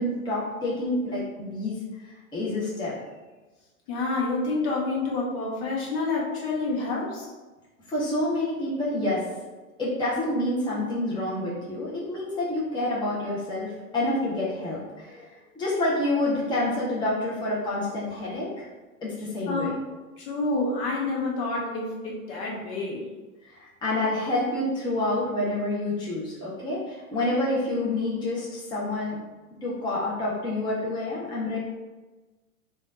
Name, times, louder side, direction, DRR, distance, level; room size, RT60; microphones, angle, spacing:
voice 1, 0.0-2.1 2.3-2.9 7.9-9.2 9.8-18.7 19.0-19.7 23.4-29.2 29.6-31.6, left 1 dB, 10° left, -7 dB, 0.9 m, -28 dB
voice 2, 3.9-7.3 19.5-19.8 20.2-23.0, left 3 dB, 45° left, -3 dB, 1.1 m, -28 dB
3.5 x 2.7 x 3.7 m, 1.2 s
hypercardioid pair, 110°, 43 cm